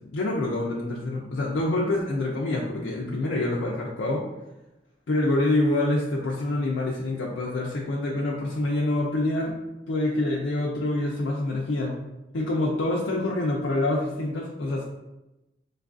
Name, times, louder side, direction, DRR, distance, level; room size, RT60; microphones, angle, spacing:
voice 1, 0.1-4.2 5.1-9.5 9.9-12.0 12.3-14.8, left 2 dB, 90° left, -3 dB, 0.5 m, -26 dB
4.5 x 2.4 x 2.4 m, 0.97 s
head